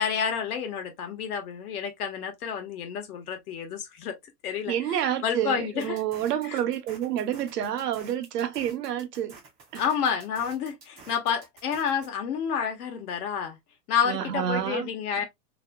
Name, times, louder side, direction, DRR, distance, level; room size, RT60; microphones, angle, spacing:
voice 1, 0.0-4.2 4.4-6.0 6.4-6.6 9.7-13.6 13.9-15.3, left 7 dB, 65° left, 1.1 m, -29 dB
voice 2, 4.7-9.4 9.7-9.8 14.0-14.9 15.2-15.3, right 10 dB, 70° right, 0.9 m, -29 dB
sound 1, 5.8-12.1, right 4 dB, 15° right, 0.4 m, -50 dB
2.8 x 2.6 x 2.2 m
hypercardioid pair, 135°, 49 cm